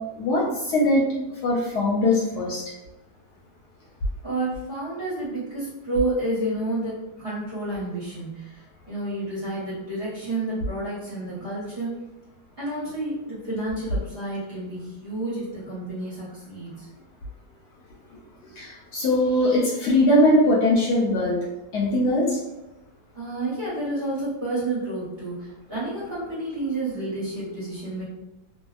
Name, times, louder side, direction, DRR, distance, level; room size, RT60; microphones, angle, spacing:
voice 1, 0.2-1.0 1.4-2.6 18.4-21.4 21.7-22.4, left 1 dB, 70° left, -4 dB, 1.0 m, -21 dB
voice 2, 4.2-12.0 12.6-16.9 23.1-28.0, right 2 dB, 40° right, -9 dB, 1.0 m, -30 dB
2.7 x 2.7 x 2.3 m, 1.0 s
omnidirectional pair, 2.0 m